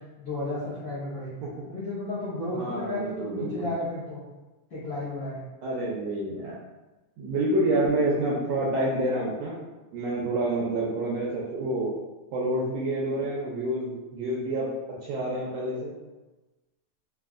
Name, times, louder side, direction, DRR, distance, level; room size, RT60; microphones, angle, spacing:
voice 1, 0.0-1.3 1.7-4.2 4.7-5.4, left 2 dB, 65° left, -11 dB, 1.2 m, -33 dB
voice 2, 2.5-3.7 5.6-6.6 7.2-9.6 9.9-11.9 12.3-14.7 15.0-15.9, right 1 dB, 80° right, -5 dB, 1.5 m, -28 dB
5.0 x 2.4 x 2.4 m, 1.1 s
omnidirectional pair, 3.5 m